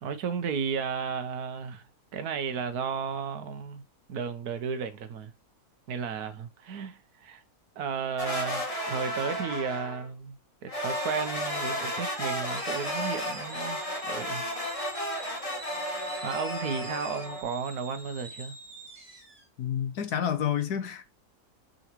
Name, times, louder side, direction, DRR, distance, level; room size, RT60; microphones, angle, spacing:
voice 1, 0.0-1.8 2.1-3.8 4.1-5.3 5.9-7.4 7.7-14.4 16.2-18.5, right 6 dB, 70° right, 1.5 m, -34 dB
sound 1, 8.2-10.1 10.7-17.4, equal, 20° left, 1.7 m, -33 dB
sound 2, 10.9-19.5, right 2 dB, 25° right, 1.4 m, -45 dB
voice 2, 19.6-21.0, left 9 dB, 75° left, 1.5 m, -29 dB
6.6 x 5.7 x 3.1 m
omnidirectional pair, 1.7 m